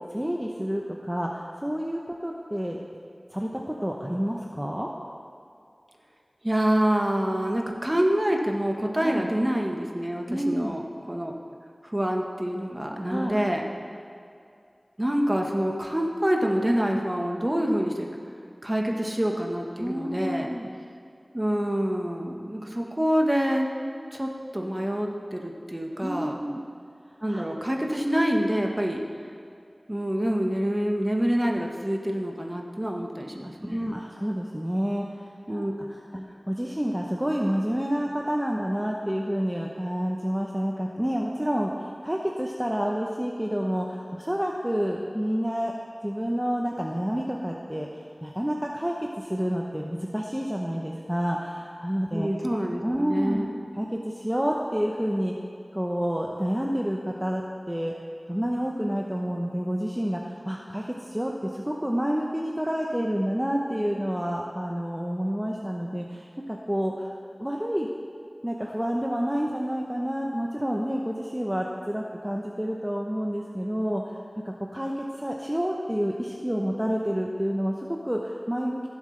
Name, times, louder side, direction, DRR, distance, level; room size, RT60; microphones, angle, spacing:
voice 1, 0.1-2.8 3.3-4.9 9.0-9.3 10.3-10.7 13.0-13.4 19.8-20.7 26.0-26.6 27.3-27.4 33.7-35.2 35.5-45.7 46.0-47.9 48.2-52.3 52.8-53.4 53.7-55.3 55.7-57.9 58.3-67.1 67.4-67.9 68.4-74.0 74.4-78.9, equal, 10° right, -1 dB, 0.8 m, -29 dB
voice 2, 6.4-10.8 11.1-11.3 11.8-13.7 15.0-18.1 18.6-20.5 21.3-23.7 24.1-26.3 27.2-29.0 29.9-33.9 35.5-35.7 36.1-36.4 52.1-53.6, equal, 25° right, 1 dB, 1.3 m, -26 dB
16.0 x 7.5 x 3.3 m, 2.4 s
wide cardioid pair, 45°, 0 cm